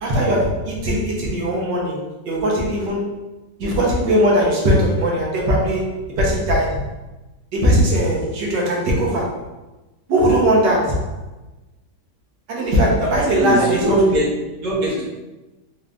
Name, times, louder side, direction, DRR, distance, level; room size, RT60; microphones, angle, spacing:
voice 1, 0.0-2.0 2.3-3.0 3.6-5.9 6.2-6.8 7.5-9.4 10.1-11.1 12.5-14.0, equal, 75° right, -2 dB, 1.5 m, -19 dB
voice 2, 13.0-14.3 14.6-15.0, right 1 dB, 55° right, -6 dB, 1.5 m, -21 dB
3.8 x 2.5 x 3.4 m, 1.1 s
omnidirectional pair, 2.0 m